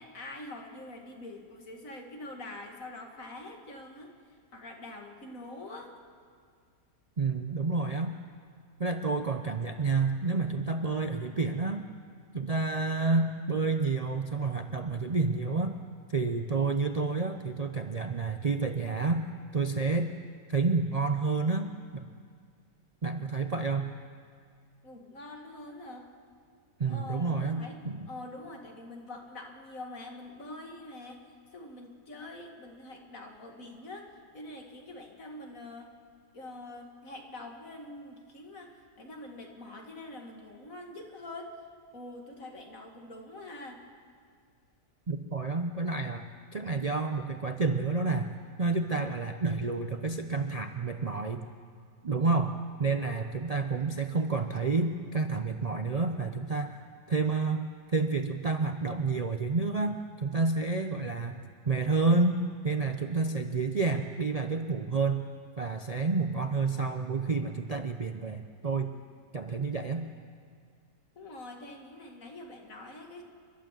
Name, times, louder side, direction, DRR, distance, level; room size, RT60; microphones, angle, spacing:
voice 1, 0.0-4.1 4.5-5.9 24.8-26.1 26.9-27.8 28.1-31.2 31.5-34.1 34.3-35.9 36.3-41.6 41.9-43.8 71.1-73.2, left 2 dB, 50° left, 2 dB, 2.6 m, -45 dB
voice 2, 7.2-8.1 8.8-11.8 12.3-15.8 16.1-19.2 19.5-20.1 20.5-22.1 23.0-23.9 26.8-28.0 45.1-48.3 48.6-51.4 52.0-56.7 57.1-61.4 61.7-62.4 62.6-65.2 65.6-68.9 69.3-70.0, right 3 dB, 85° right, 6 dB, 0.3 m, -29 dB
29.5 x 12.0 x 7.6 m, 2.1 s
omnidirectional pair, 1.8 m